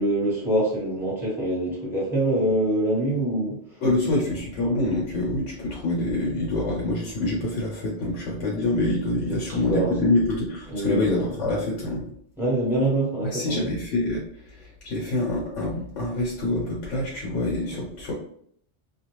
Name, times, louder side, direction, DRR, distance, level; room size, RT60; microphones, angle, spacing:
voice 1, 0.0-3.8 9.3-10.1 10.7-11.3 12.4-13.7 17.7-17.8, right 1 dB, ahead, -7 dB, 1.1 m, -25 dB
voice 2, 3.8-12.1 13.3-14.2 14.5-18.1, left 2 dB, 85° left, -4 dB, 1.1 m, -26 dB
2.4 x 2.3 x 3.0 m, 0.65 s
omnidirectional pair, 1.2 m